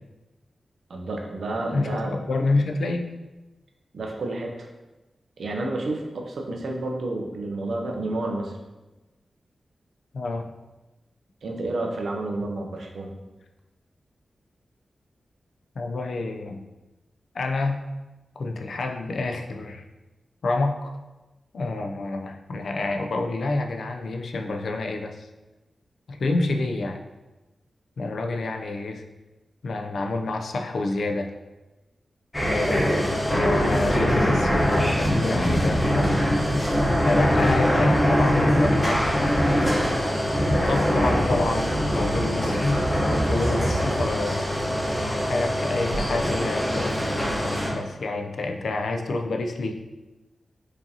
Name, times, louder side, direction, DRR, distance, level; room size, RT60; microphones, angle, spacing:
voice 1, 0.9-2.1 3.9-4.7 5.4-8.5 11.4-13.1, right 2 dB, 75° right, 1 dB, 0.6 m, -30 dB
voice 2, 1.7-3.1 10.1-10.5 15.8-16.6 17.3-17.8 18.4-19.8 20.4-20.9 21.5-25.3 26.1-27.0 28.0-29.0 29.6-31.3 32.5-36.2 37.1-39.1 40.4-44.5 45.0-47.0 47.7-49.8, left 2 dB, 75° left, 4 dB, 0.3 m, -28 dB
sound 1, 32.3-47.7, equal, 10° left, 0.8 m, -23 dB
4.9 x 2.7 x 2.7 m, 1.1 s
wide cardioid pair, 145°, 0 cm